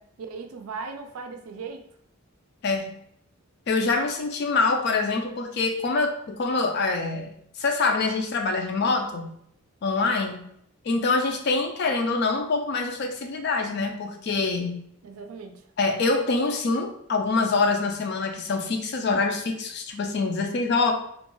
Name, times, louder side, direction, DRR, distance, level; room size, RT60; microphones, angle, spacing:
voice 1, 0.2-1.8 15.0-15.6, right 4 dB, 75° right, 5 dB, 0.4 m, -37 dB
voice 2, 2.6-2.9 3.7-9.3 9.8-10.5 10.8-14.8 15.8-20.9, left 3 dB, 50° left, 4 dB, 0.3 m, -25 dB
2.4 x 2.2 x 3.0 m, 0.70 s
head